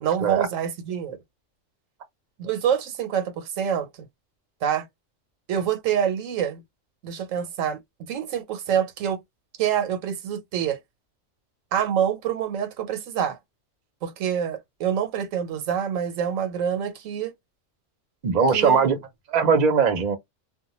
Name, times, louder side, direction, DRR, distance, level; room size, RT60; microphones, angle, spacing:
voice 1, 0.0-1.2 2.4-3.9 4.6-4.9 5.5-6.6 7.0-7.8 8.1-9.2 9.6-10.8 11.7-13.4 14.0-17.3 18.5-18.9, right 8 dB, 80° right, 1.0 m, -26 dB
voice 2, 18.2-19.0 19.3-20.2, right 5 dB, 45° right, 0.6 m, -20 dB
2.2 x 2.1 x 2.9 m
omnidirectional pair, 1.3 m